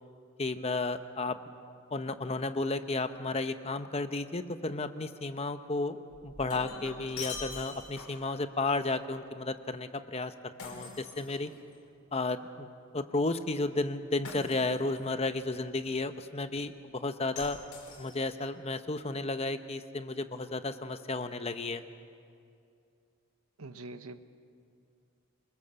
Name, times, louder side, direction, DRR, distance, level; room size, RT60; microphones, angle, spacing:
voice 1, 0.4-1.4 1.9-11.5 12.1-17.6 18.0-21.8, left 2 dB, 30° left, 9 dB, 0.8 m, -33 dB
Shatter, 6.1-8.3 10.6-11.9 14.2-15.0 17.4-18.5, left 4 dB, 85° left, 4.8 m, -43 dB
voice 2, 23.6-24.2, right 2 dB, 80° right, 10 dB, 1.1 m, -44 dB
26.0 x 22.5 x 6.9 m, 2.4 s
head